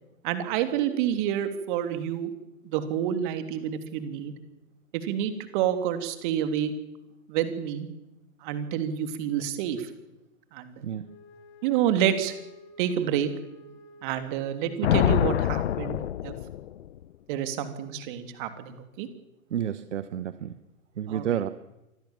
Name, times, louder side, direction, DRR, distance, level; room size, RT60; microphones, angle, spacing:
voice 1, 0.2-2.3 2.6-4.3 4.9-6.7 7.3-7.9 8.4-9.9 10.5-10.8 11.6-12.4 12.8-13.3 14.0-16.4 17.3-19.1 21.1-21.4, right 10 dB, 35° right, 9 dB, 3.1 m, -28 dB
voice 2, 10.8-11.1 19.5-20.5 21.0-21.5, right 10 dB, 55° right, 13 dB, 1.3 m, -30 dB
Wind instrument woodwind instrument, 11.0-15.6, left 1 dB, 30° left, 6.0 m, -51 dB
Thunder, 14.8-17.0, left 12 dB, 50° left, 1.1 m, -25 dB
26.5 x 21.0 x 7.4 m, 0.98 s
figure-of-eight pair, 120°, 42 cm